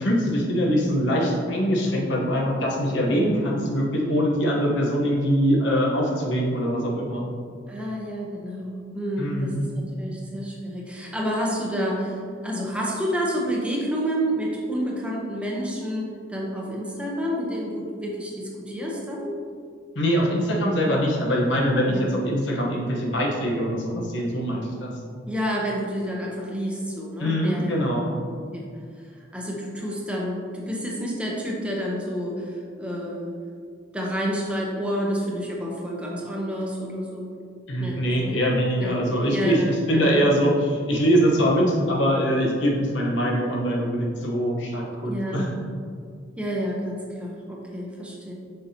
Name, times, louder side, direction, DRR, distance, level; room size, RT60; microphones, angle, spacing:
voice 1, 0.0-7.2 9.2-9.7 19.9-24.9 27.2-28.1 37.7-45.5, equal, 65° left, -1 dB, 1.1 m, -23 dB
voice 2, 7.7-19.3 21.8-22.1 25.3-28.2 28.5-28.7 29.0-33.4 33.9-37.3 37.8-38.3 38.8-38.9 39.3-40.2 45.1-45.5 46.4-48.3, equal, 5° right, -3 dB, 0.8 m, -29 dB
6.9 x 5.7 x 2.8 m, 2.2 s
head